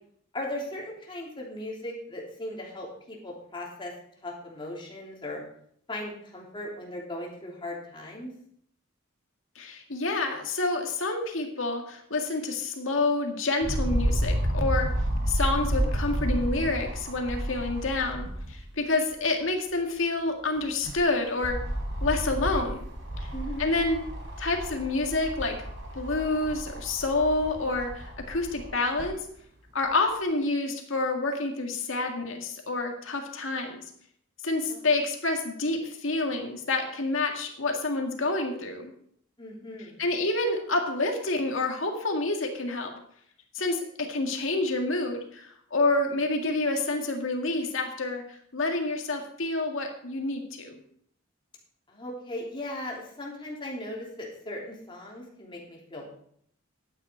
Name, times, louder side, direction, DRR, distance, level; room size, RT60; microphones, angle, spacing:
voice 1, 0.3-3.9 4.2-5.4 5.9-8.3 23.3-23.7 34.7-34.8 39.4-40.0 51.9-56.1, left 1 dB, 25° left, -3 dB, 3.1 m, -38 dB
voice 2, 9.6-14.9 15.3-21.6 22.0-22.9 23.2-23.3 23.6-24.0 24.4-25.6 25.9-29.2 29.7-33.8 34.4-38.9 40.0-42.9 43.5-50.8, left 2 dB, 75° left, 3 dB, 2.0 m, -28 dB
sound 1, 13.6-18.7 19.1-19.2 20.6-29.1 29.9-30.0, right 1 dB, 75° right, 3.6 m, -31 dB
11.5 x 9.1 x 4.5 m, 0.66 s
head